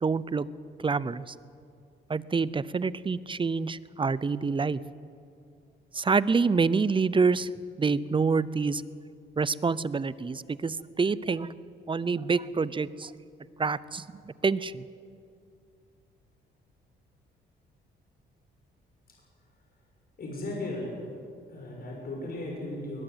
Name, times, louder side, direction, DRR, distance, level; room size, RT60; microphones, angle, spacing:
voice 1, 0.0-0.5 0.8-1.3 2.1-4.8 5.9-7.5 7.8-8.8 9.4-11.5 11.9-13.1 13.6-14.8, right 4 dB, 25° right, 18 dB, 0.7 m, -27 dB
voice 2, 20.2-21.0 21.4-23.0, left 1 dB, 50° left, -1 dB, 6.0 m, -36 dB
21.0 x 21.0 x 8.2 m, 2.4 s
cardioid pair, 90°, 20 cm